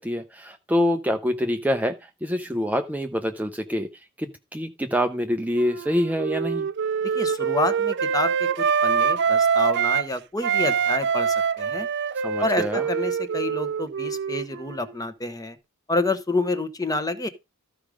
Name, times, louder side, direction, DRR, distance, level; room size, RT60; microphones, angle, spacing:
voice 1, 0.0-3.9 4.2-6.7 12.2-12.9, equal, 5° right, 0.6 m, -26 dB
Wind instrument woodwind instrument, 5.6-10.1 10.4-14.9, right 6 dB, 55° right, 0.5 m, -24 dB
voice 2, 7.1-8.5 8.8-11.9 12.4-15.6 15.9-17.3, left 2 dB, 15° left, 1.1 m, -28 dB
13.5 x 5.1 x 5.0 m
head